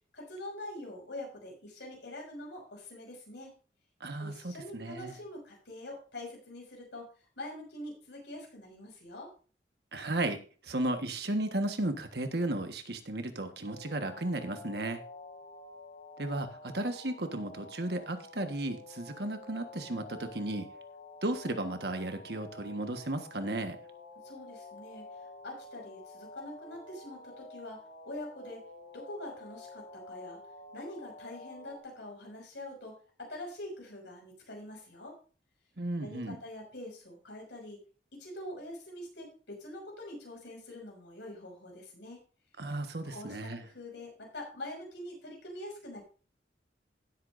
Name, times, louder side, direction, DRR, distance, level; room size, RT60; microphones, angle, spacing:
voice 1, 0.1-3.5 4.2-9.3 24.2-28.6 28.9-30.4 30.7-35.2 36.0-37.8 38.1-42.2 43.0-46.0, left 1 dB, 90° left, 0 dB, 5.8 m, -44 dB
voice 2, 4.0-5.1 9.9-10.4 10.6-15.0 16.2-20.7 21.2-23.8 35.8-36.4 42.6-43.6, right 1 dB, 65° right, 7 dB, 1.4 m, -34 dB
sound 1, 13.6-31.8, left 2 dB, 50° left, 2.2 m, -50 dB
16.5 x 8.3 x 2.6 m, 0.37 s
head